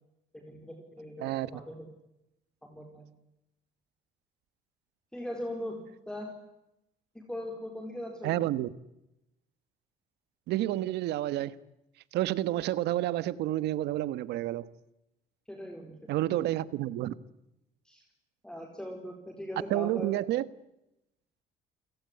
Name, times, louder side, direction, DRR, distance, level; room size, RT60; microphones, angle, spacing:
voice 1, 0.3-1.9 2.6-3.1 5.1-6.4 7.1-8.4 15.5-16.0 16.3-16.4 17.8-18.0 18.4-20.2, left 1 dB, 5° left, 4.5 m, -40 dB
voice 2, 8.2-8.7 10.5-11.5 12.1-14.7 16.1-17.1 19.7-20.4, right 14 dB, 80° right, 1.5 m, -29 dB
29.5 x 17.5 x 9.9 m
cardioid pair, 110°, 17 cm